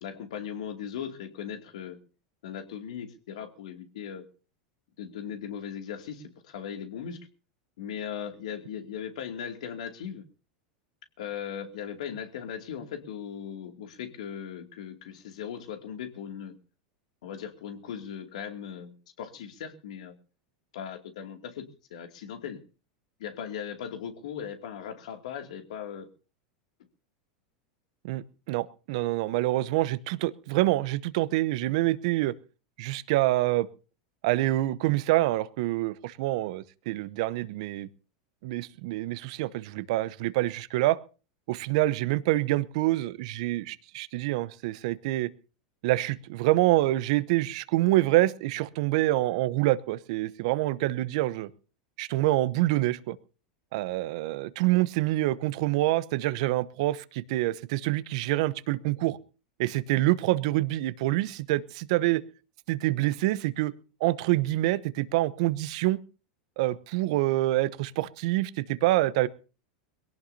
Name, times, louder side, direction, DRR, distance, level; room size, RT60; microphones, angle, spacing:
voice 1, 0.0-2.0 2.4-4.3 5.0-7.3 7.8-10.2 11.2-16.6 17.2-20.2 20.7-22.6 23.2-26.1, left 8 dB, 70° left, 6 dB, 2.5 m, -38 dB
voice 2, 28.0-32.3 32.8-33.7 34.2-37.9 38.4-41.0 41.5-45.3 45.8-51.5 52.0-53.2 53.7-59.2 59.6-62.2 62.7-63.7 64.0-66.0 66.6-69.3, right 17 dB, 65° right, 17 dB, 0.9 m, -26 dB
22.0 x 17.0 x 2.8 m, 0.36 s
hypercardioid pair, 95°, 4 cm